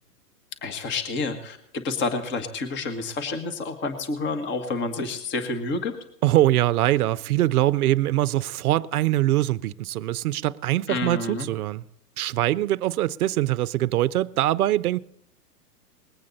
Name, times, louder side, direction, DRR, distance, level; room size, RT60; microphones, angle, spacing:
voice 1, 0.6-1.6 1.8-5.9 10.9-11.5, left 3 dB, 25° left, 1.5 m, -29 dB
voice 2, 6.2-11.8 12.2-15.0, right 15 dB, 65° right, 0.7 m, -23 dB
20.5 x 8.7 x 4.1 m
hypercardioid pair, 130°, 48 cm